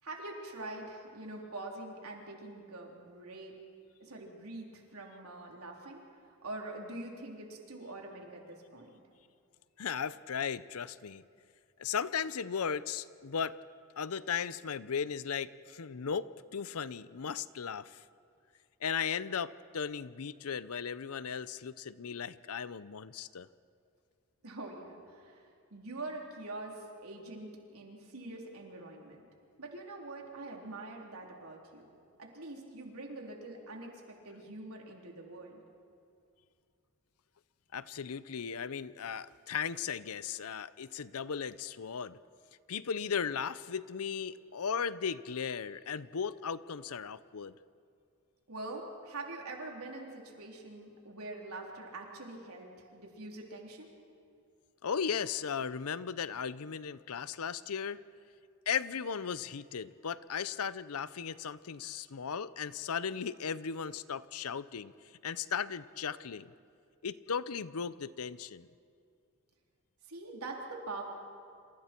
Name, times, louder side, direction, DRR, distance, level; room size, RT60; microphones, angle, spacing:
voice 1, 0.0-3.6 4.0-8.9 24.4-29.2 29.6-31.9 32.2-35.5 48.5-53.9 70.0-71.0, right 2 dB, 80° right, 0 dB, 3.6 m, -44 dB
voice 2, 9.8-11.2 11.8-13.6 14.0-18.0 18.8-23.5 37.7-42.2 42.7-47.5 54.8-58.0 58.7-64.9 65.2-66.5 67.0-68.7, left 6 dB, 80° left, 16 dB, 0.6 m, -36 dB
28.0 x 27.5 x 4.5 m, 2.4 s
head